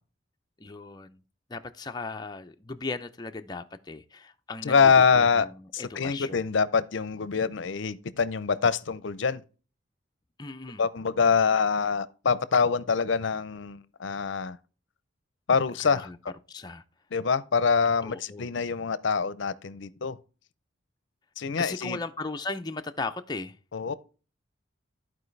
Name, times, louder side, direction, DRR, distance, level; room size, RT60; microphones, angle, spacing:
voice 1, 0.6-1.2 1.5-6.4 10.4-10.9 15.8-16.2 16.5-16.8 18.0-18.5 21.6-23.6, left 3 dB, 20° left, 0.5 m, -37 dB
voice 2, 4.6-5.5 5.7-9.4 10.8-14.6 15.5-16.1 17.1-20.2 21.4-22.0 23.7-23.9, left 5 dB, 65° left, 0.5 m, -25 dB
14.0 x 4.6 x 3.2 m
head